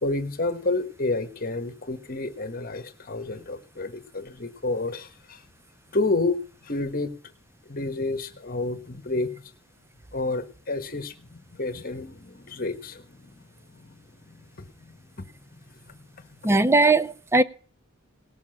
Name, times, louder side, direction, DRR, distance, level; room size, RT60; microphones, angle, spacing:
voice 1, 0.0-5.4 5.9-7.1 7.6-9.4 10.1-16.5, left 2 dB, 45° left, 1.5 m, -30 dB
voice 2, 16.4-17.4, right 2 dB, 15° right, 0.6 m, -19 dB
18.5 x 7.3 x 5.7 m
head